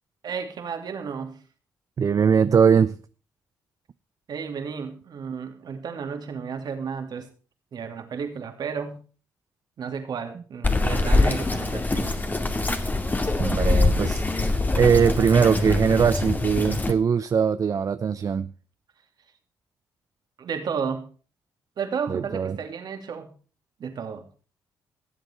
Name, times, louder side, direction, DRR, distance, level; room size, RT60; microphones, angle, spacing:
voice 1, 0.2-1.4 4.3-7.3 7.7-9.0 9.8-12.2 20.4-21.1 21.8-23.3 23.8-24.2, right 6 dB, 65° right, 2.7 m, -32 dB
voice 2, 2.0-2.9 13.4-14.2 14.7-18.5 22.1-22.6, right 7 dB, 45° right, 0.6 m, -21 dB
Bird vocalization bird call bird song, 10.6-16.9, left 2 dB, 25° left, 2.0 m, -23 dB
18.0 x 7.9 x 4.5 m
supercardioid pair, 60°, 8 cm